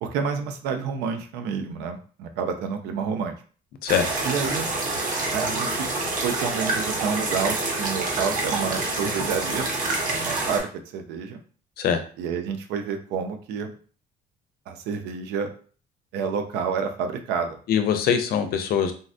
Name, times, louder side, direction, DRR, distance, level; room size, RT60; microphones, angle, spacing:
voice 1, 0.0-3.4 4.2-4.7 5.3-5.9 6.2-9.7 10.1-11.4 12.2-13.7 14.7-15.5 16.1-17.6, right 6 dB, 90° right, 6 dB, 0.6 m, -29 dB
sound 1, 3.9-10.6, right 2 dB, 55° right, 1.0 m, -27 dB
voice 2, 17.7-18.9, left 7 dB, 65° left, 8 dB, 0.5 m, -22 dB
3.7 x 2.1 x 2.5 m, 0.41 s
cardioid pair, 110°, 17 cm